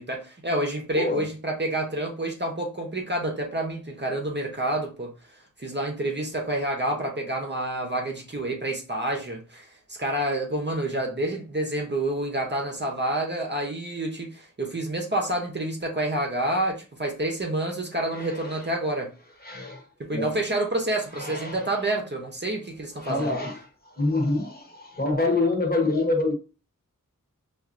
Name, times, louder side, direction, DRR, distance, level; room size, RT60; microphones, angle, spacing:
voice 1, 0.0-5.1 5.6-19.1 20.0-23.4, right 1 dB, 30° right, 0.8 m, -28 dB
voice 2, 0.9-1.3 18.1-18.7 19.4-19.9 20.1-20.4 21.1-21.8 23.0-26.3, left 2 dB, 30° left, 1.0 m, -27 dB
4.6 x 2.5 x 2.5 m
wide cardioid pair, 85°, 33 cm